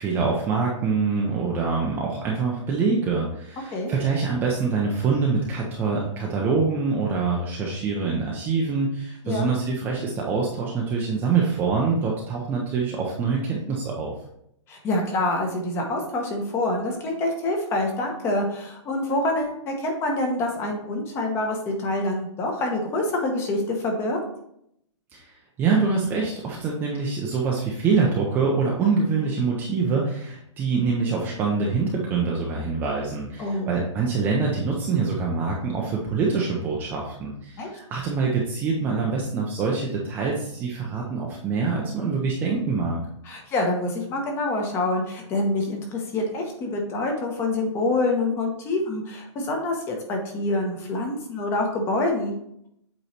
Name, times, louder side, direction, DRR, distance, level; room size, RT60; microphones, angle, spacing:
voice 1, 0.0-14.1 25.1-43.0, right 4 dB, 10° right, -2 dB, 0.5 m, -25 dB
voice 2, 14.7-24.2 33.4-33.8 37.6-37.7 43.2-52.3, left 2 dB, 15° left, 2 dB, 0.9 m, -26 dB
8.0 x 3.1 x 4.2 m, 0.74 s
hypercardioid pair, 160°, 16 cm